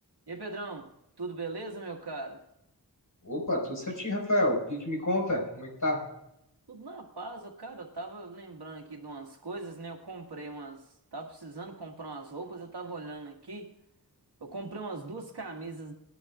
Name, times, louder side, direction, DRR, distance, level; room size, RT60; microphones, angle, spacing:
voice 1, 0.3-0.9 1.2-2.4 6.7-10.8 11.1-13.7 14.4-15.9, right 3 dB, 85° right, 1 dB, 1.9 m, -40 dB
voice 2, 3.2-6.0, left 1 dB, 50° left, -1 dB, 4.9 m, -29 dB
20.5 x 11.0 x 2.5 m, 0.81 s
wide cardioid pair, 75°, 38 cm